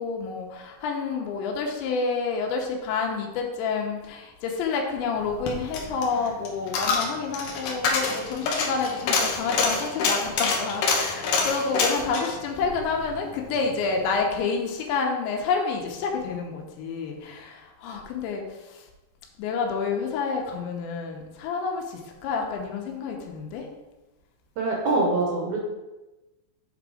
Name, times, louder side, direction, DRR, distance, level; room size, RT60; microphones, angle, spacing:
voice 1, 0.0-18.8 19.4-23.7, left 5 dB, 90° left, 1 dB, 3.3 m, -29 dB
Coin (dropping), 5.2-13.7 14.0-14.1, left 4 dB, 70° left, 2.1 m, -27 dB
voice 2, 24.6-25.6, right 2 dB, 85° right, -1 dB, 1.6 m, -24 dB
8.0 x 4.0 x 4.8 m, 1.1 s
omnidirectional pair, 5.1 m